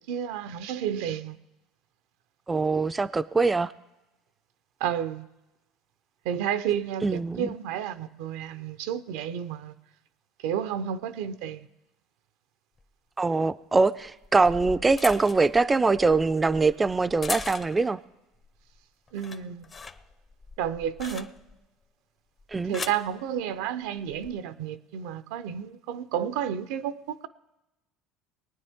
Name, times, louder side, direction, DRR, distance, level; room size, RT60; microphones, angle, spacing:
voice 1, 0.1-1.4 4.8-5.3 6.3-9.7 10.4-11.6 19.1-19.6 20.6-21.3 22.7-27.3, right 9 dB, 80° right, 0.6 m, -31 dB
voice 2, 2.5-3.7 7.0-7.5 13.2-18.0 22.5-22.8, right 3 dB, 20° right, 0.4 m, -23 dB
sound 1, 12.8-12.9 14.0-18.0 18.4-18.8 19.1-21.7 22.4-23.1 24.0-24.3, left 4 dB, 30° left, 0.6 m, -40 dB
22.0 x 9.4 x 3.6 m
supercardioid pair, 100°, 0 cm